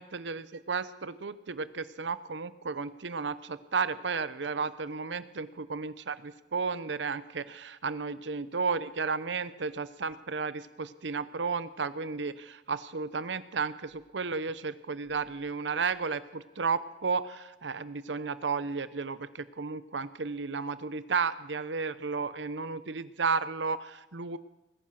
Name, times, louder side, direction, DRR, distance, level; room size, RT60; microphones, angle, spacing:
voice 1, 0.0-24.4, right 5 dB, 85° right, 15 dB, 0.8 m, -33 dB
20.5 x 10.0 x 6.4 m, 1.0 s
head